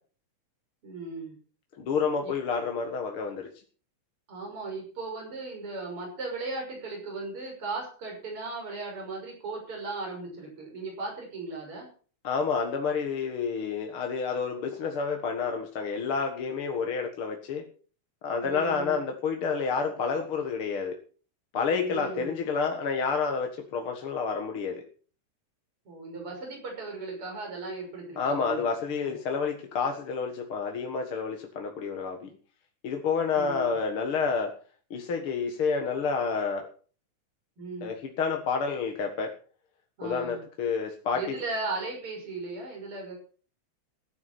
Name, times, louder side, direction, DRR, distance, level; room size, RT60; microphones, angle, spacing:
voice 1, 0.8-1.3 2.2-2.3 4.3-11.9 18.4-19.0 21.8-22.4 25.8-29.1 33.3-33.7 37.6-37.9 40.0-40.4 41.1-43.1, right 3 dB, 45° right, 0 dB, 6.9 m, -37 dB
voice 2, 1.7-3.5 12.2-17.6 18.2-21.0 21.5-24.8 28.2-32.3 32.8-34.5 34.9-36.7 37.8-39.3 40.0-41.4, left 5 dB, 50° left, 3 dB, 2.2 m, -29 dB
15.5 x 9.8 x 6.1 m, 0.41 s
omnidirectional pair, 3.4 m